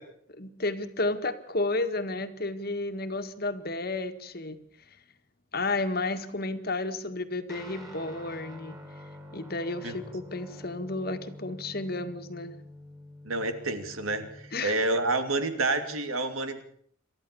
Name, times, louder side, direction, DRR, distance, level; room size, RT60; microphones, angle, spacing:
voice 1, 0.4-4.6 4.9-5.0 5.5-8.8 9.3-12.5 14.5-14.8, left 2 dB, 45° left, 8 dB, 1.8 m, -32 dB
Guitar, 7.5-15.2, left 1 dB, 15° right, 3.9 m, -47 dB
voice 2, 13.2-16.6, right 2 dB, 90° right, 8 dB, 2.8 m, -29 dB
28.5 x 13.5 x 7.0 m, 0.63 s
head